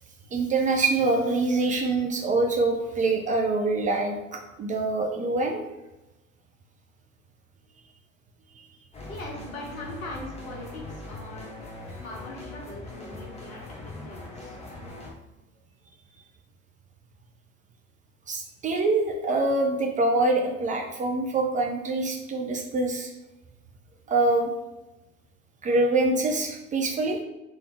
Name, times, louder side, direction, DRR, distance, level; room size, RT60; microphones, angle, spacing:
voice 1, 0.3-5.6 18.3-23.1 24.1-24.5 25.6-27.2, right 2 dB, 20° right, 2 dB, 0.4 m, -25 dB
sound 1, 8.9-15.1, left 2 dB, 15° left, 1.0 m, -41 dB
voice 2, 9.1-11.5 12.0-13.6 14.0-14.6, left 2 dB, 80° left, -2 dB, 1.3 m, -40 dB
3.3 x 3.2 x 3.5 m, 0.99 s
figure-of-eight pair, 80°, 41 cm